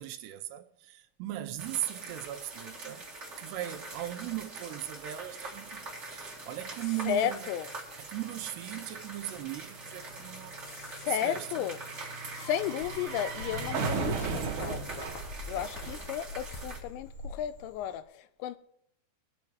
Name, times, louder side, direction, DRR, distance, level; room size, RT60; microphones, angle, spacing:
voice 1, 0.0-3.1 3.4-7.5 7.9-11.7, right 14 dB, 80° right, 2.7 m, -38 dB
sound 1, 1.6-16.8, right 2 dB, 40° right, 1.0 m, -44 dB
sound 2, 5.8-5.9 6.1-16.5 16.8-16.9, right 5 dB, 65° right, 2.1 m, -38 dB
voice 2, 7.1-7.7 10.7-11.8 12.3-15.1 15.5-18.6, left 10 dB, 90° left, 2.9 m, -34 dB
Cricket, 12.8-18.0, left 2 dB, 70° left, 1.6 m, -45 dB
21.0 x 7.1 x 4.7 m
omnidirectional pair, 5.0 m